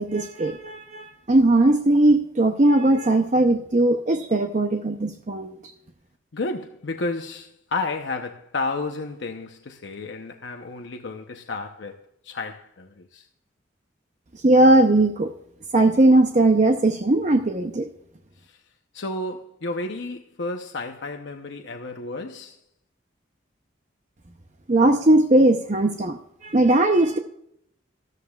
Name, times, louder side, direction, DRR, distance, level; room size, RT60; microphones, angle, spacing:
voice 1, 0.0-5.6 14.4-15.3 15.7-17.9 24.7-26.2 26.4-27.2, right 2 dB, 40° right, 0.7 m, -19 dB
voice 2, 6.3-13.2 18.5-18.6 18.9-22.6, left 3 dB, 70° left, 0.8 m, -32 dB
13.5 x 13.0 x 2.4 m
head